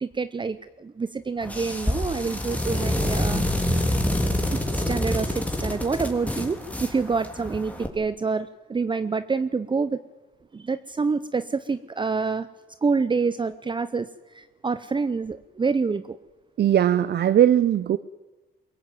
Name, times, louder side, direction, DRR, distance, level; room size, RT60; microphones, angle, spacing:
voice 1, 0.0-3.4 4.5-10.0 10.5-12.5 12.8-14.1 14.3-16.2, right 4 dB, 25° right, 13 dB, 0.8 m, -27 dB
sound 1, 1.4-7.9, left 1 dB, 5° left, 3.6 m, -27 dB
voice 2, 16.6-18.0, right 10 dB, 55° right, 15 dB, 0.7 m, -19 dB
22.5 x 17.5 x 9.1 m, 1.2 s
cardioid pair, 90°, 20 cm